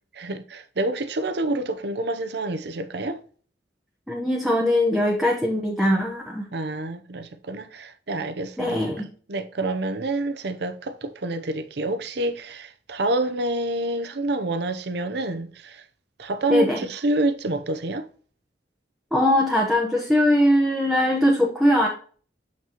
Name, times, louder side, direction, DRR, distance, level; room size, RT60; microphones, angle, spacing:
voice 1, 0.1-3.2 6.5-8.9 9.3-15.8 16.2-18.1, right 2 dB, 65° right, 0.7 m, -28 dB
voice 2, 4.1-6.5 8.6-9.1 16.5-16.8 19.1-21.9, left 1 dB, ahead, 0.9 m, -21 dB
7.2 x 5.9 x 2.9 m
head